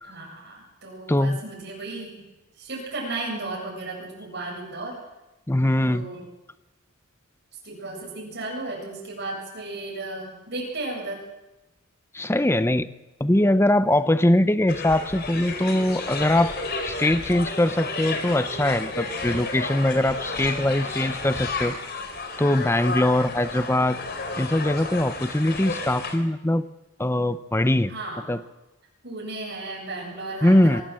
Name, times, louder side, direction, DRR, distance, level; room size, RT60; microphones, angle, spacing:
voice 1, 0.0-2.2 2.6-5.0 5.8-6.3 7.6-11.2 27.9-28.3 29.0-30.8, right 2 dB, 55° right, -2 dB, 7.7 m, -34 dB
voice 2, 1.1-1.4 5.5-6.1 12.1-12.9 13.2-16.5 16.8-22.0 22.4-24.0 24.4-26.6 27.0-27.9 28.3-28.4 30.4-30.8, left 1 dB, 10° left, 13 dB, 0.7 m, -22 dB
sound 1, 14.7-26.2, left 3 dB, 50° left, 4.2 m, -32 dB
25.5 x 18.0 x 7.7 m, 1.0 s
head